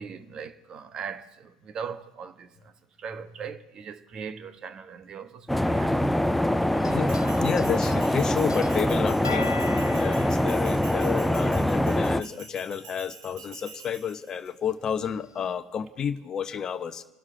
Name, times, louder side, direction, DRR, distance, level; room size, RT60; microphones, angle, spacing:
voice 1, 0.0-2.7 3.0-6.0 6.4-6.7, right 6 dB, 35° right, 1.1 m, -39 dB
sound 1, 5.5-12.2, left 1 dB, 5° left, 0.5 m, -24 dB
sound 2, 6.7-11.5 12.0-12.1 13.7-13.8 14.5-14.6 15.3-15.5, left 5 dB, 85° left, 0.6 m, -41 dB
Bell, 7.1-14.5, right 6 dB, 65° right, 2.5 m, -47 dB
voice 2, 7.4-17.0, left 8 dB, 30° left, 0.9 m, -31 dB
29.0 x 12.5 x 3.8 m
figure-of-eight pair, 80°, 2 cm